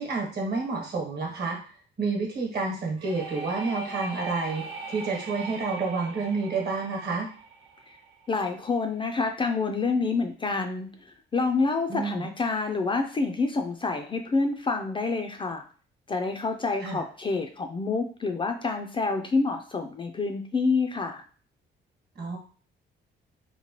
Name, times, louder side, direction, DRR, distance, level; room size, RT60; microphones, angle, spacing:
voice 1, 0.0-1.6 2.0-7.3 11.9-12.3 16.8-17.0 22.1-22.4, right 4 dB, 55° right, 0 dB, 1.1 m, -29 dB
sound 1, 3.0-8.6, right 3 dB, 85° right, 0.8 m, -40 dB
voice 2, 8.3-10.9 11.3-15.6 16.1-21.2, left 4 dB, 25° left, 5 dB, 0.3 m, -27 dB
3.0 x 2.2 x 2.9 m, 0.40 s
cardioid pair, 90°, 20 cm